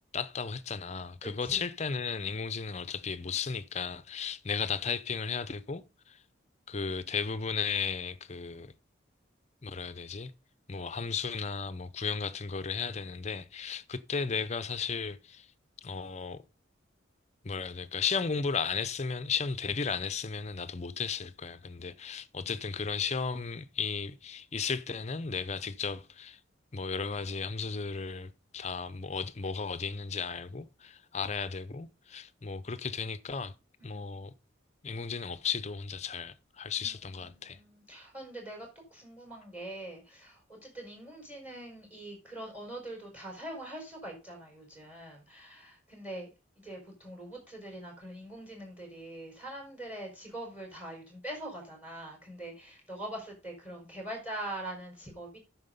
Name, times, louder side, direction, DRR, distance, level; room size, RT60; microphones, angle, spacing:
voice 1, 0.1-6.2 6.7-8.7 9.6-10.3 10.7-15.5 15.8-16.4 17.4-26.4 26.7-33.5 33.8-34.3 34.8-37.6, left 5 dB, 35° left, 0.6 m, -35 dB
voice 2, 1.2-1.6 33.8-34.0 36.8-46.3 46.6-55.4, right 1 dB, 5° right, 4.9 m, -43 dB
9.7 x 6.0 x 5.3 m
head